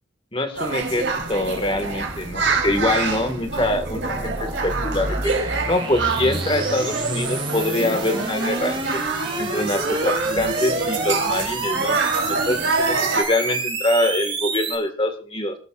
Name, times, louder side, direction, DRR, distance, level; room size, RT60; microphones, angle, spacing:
voice 1, 0.3-5.3 5.7-9.0 9.4-12.0 12.3-15.6, left 1 dB, 25° left, 7 dB, 1.9 m, -24 dB
sound 1, 0.5-13.2, right 4 dB, 70° right, 3.8 m, -27 dB
sound 2, 0.9-14.7, right 3 dB, 25° right, 3.1 m, -29 dB
Female singing, 6.3-13.8, right 3 dB, 50° right, 4.5 m, -38 dB
26.5 x 13.5 x 2.5 m, 0.35 s
head